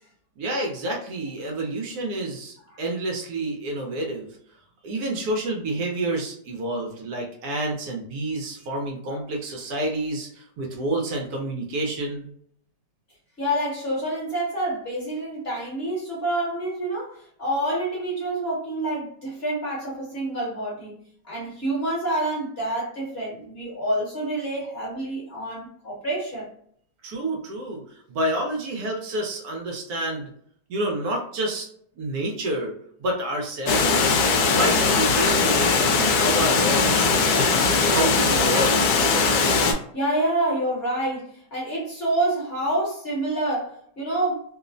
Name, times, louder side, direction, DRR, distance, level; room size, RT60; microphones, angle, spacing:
voice 1, 0.4-4.3 4.8-12.3 27.0-30.3 30.7-31.7 32.0-34.2 34.5-39.1, right 1 dB, 70° right, 0 dB, 1.1 m, -29 dB
voice 2, 13.4-21.0 21.2-26.5 39.9-44.4, right 1 dB, 45° left, -5 dB, 1.1 m, -27 dB
Water, 33.7-39.7, left 4 dB, 75° left, 1.0 m, -20 dB
3.0 x 2.0 x 2.4 m, 0.64 s
omnidirectional pair, 1.8 m